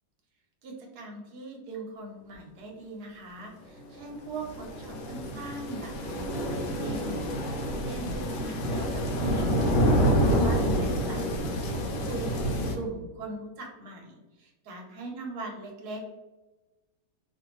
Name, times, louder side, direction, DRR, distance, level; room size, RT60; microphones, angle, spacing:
voice 1, 0.6-16.0, right 2 dB, 70° right, 0 dB, 1.1 m, -40 dB
sound 1, 3.8-12.8, equal, 80° left, 1.3 m, -27 dB
2.9 x 2.5 x 2.9 m, 1.1 s
omnidirectional pair, 1.9 m